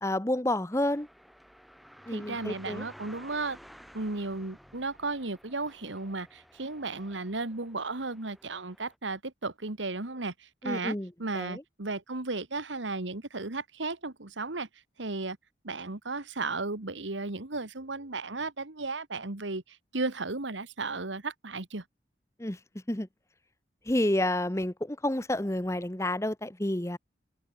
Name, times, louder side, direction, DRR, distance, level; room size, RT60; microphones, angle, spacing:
voice 1, 0.0-1.1 2.1-2.8 10.6-11.1 11.3-11.6 22.4-22.6 22.9-23.1 23.9-27.0, left 1 dB, 15° left, 1.0 m, -29 dB
sound 1, 0.7-9.0, equal, ahead, 6.8 m, -53 dB
voice 2, 2.1-3.6 3.9-14.7 15.0-15.4 15.6-21.8, right 3 dB, 90° right, 1.9 m, -35 dB
head